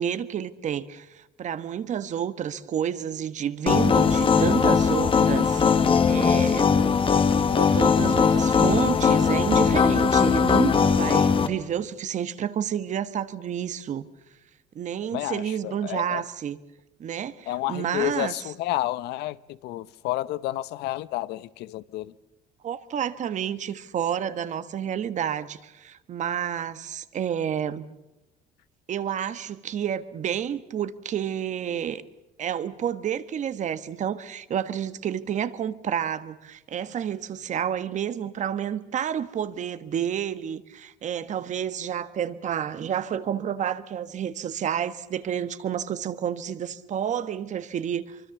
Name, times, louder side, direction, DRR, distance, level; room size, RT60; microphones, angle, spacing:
voice 1, 0.0-5.6 6.1-6.8 7.5-14.0 14.7-16.6 17.0-18.5 22.6-27.9 28.9-32.0 32.4-48.2, right 9 dB, 45° right, 1.4 m, -30 dB
sound 1, 3.7-11.5, left 6 dB, 30° left, 1.5 m, -20 dB
voice 2, 15.1-16.2 17.5-22.1, left 15 dB, 80° left, 0.8 m, -30 dB
24.5 x 24.5 x 7.1 m
cardioid pair, 130°, 17 cm